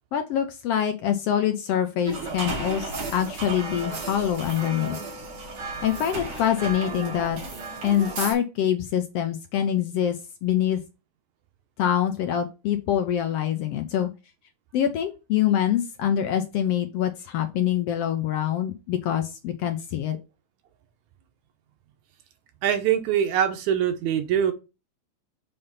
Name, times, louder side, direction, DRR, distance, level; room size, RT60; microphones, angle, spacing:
voice 1, 0.1-5.0 5.8-7.4 7.8-10.1 10.4-10.8 11.8-14.1 14.7-20.2, left 10 dB, 75° left, 1.5 m, -25 dB
sound 1, 2.0-8.3, right 3 dB, 70° right, 3.4 m, -34 dB
voice 2, 22.6-24.5, right 9 dB, 85° right, 2.3 m, -23 dB
6.8 x 3.5 x 5.6 m
omnidirectional pair, 3.3 m